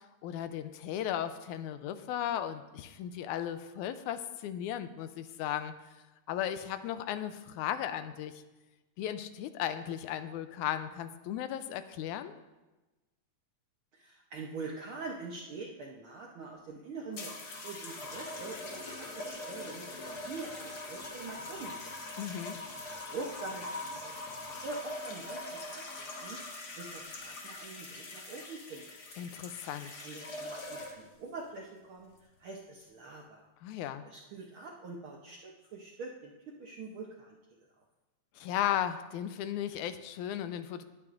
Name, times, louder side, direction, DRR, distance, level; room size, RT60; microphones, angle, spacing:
voice 1, 0.0-5.8 6.3-8.4 9.0-12.4 22.2-22.6 29.2-30.0 33.6-34.1 38.4-40.8, left 10 dB, 85° left, 11 dB, 2.0 m, -36 dB
voice 2, 13.9-19.9 20.2-21.9 23.0-28.9 30.0-33.5 34.1-37.4, right 3 dB, 70° right, -1 dB, 1.2 m, -44 dB
sound 1, 17.1-31.2 32.0-32.4, left 2 dB, 45° left, 1.4 m, -42 dB
19.5 x 9.3 x 2.5 m, 1.1 s
omnidirectional pair, 3.5 m